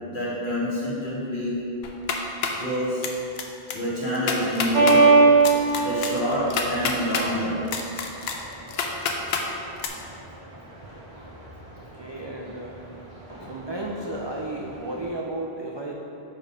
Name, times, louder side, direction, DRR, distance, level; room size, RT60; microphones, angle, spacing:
voice 1, 0.1-1.6 2.5-3.0 3.7-5.1 5.7-7.6, equal, 50° left, -8 dB, 1.7 m, -27 dB
sound 1, 1.8-2.6 3.0-3.4 3.7-3.8 4.1-5.0 5.4-7.3 7.7-9.4 9.8-9.9, left 5 dB, 75° left, 0.9 m, -28 dB
sound 2, 4.7-15.1, right 4 dB, 30° right, 1.3 m, -23 dB
voice 2, 11.9-12.8 13.4-15.9, right 1 dB, 45° right, -2 dB, 0.3 m, -33 dB
5.3 x 4.4 x 4.9 m, 2.8 s
omnidirectional pair, 1.1 m